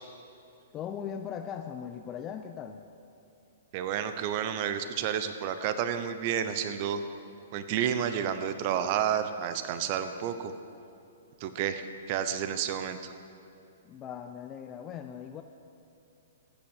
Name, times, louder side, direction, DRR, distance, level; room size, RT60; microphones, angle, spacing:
voice 1, 0.7-2.8 13.8-15.4, left 8 dB, 25° left, 6 dB, 0.6 m, -39 dB
voice 2, 3.7-7.0 7.5-10.5 11.4-13.1, right 9 dB, 45° right, 10 dB, 0.9 m, -30 dB
15.0 x 9.0 x 7.4 m, 2.7 s
hypercardioid pair, 140°, 0 cm